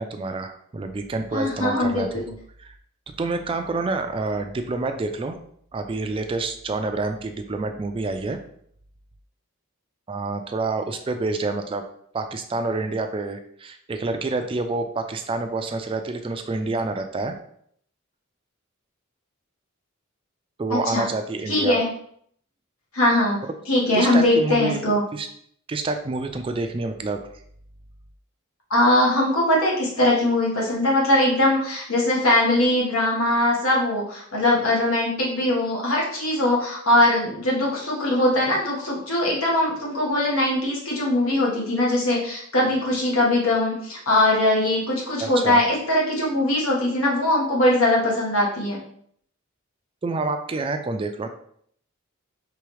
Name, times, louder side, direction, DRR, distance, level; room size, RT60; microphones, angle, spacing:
voice 1, 0.0-2.2 2.6-2.7 3.2-5.4 5.7-8.4 10.1-11.9 12.1-17.4 20.6-21.8 23.9-25.3 25.7-27.2 45.2-45.6 50.0-51.3, right 3 dB, 25° right, 7 dB, 0.3 m, -28 dB
voice 2, 1.3-2.3 20.7-21.1 21.5-21.9 22.9-23.4 23.7-25.0 28.7-48.8, left 1 dB, 80° left, -3 dB, 1.5 m, -21 dB
4.8 x 3.4 x 3.2 m, 0.65 s
head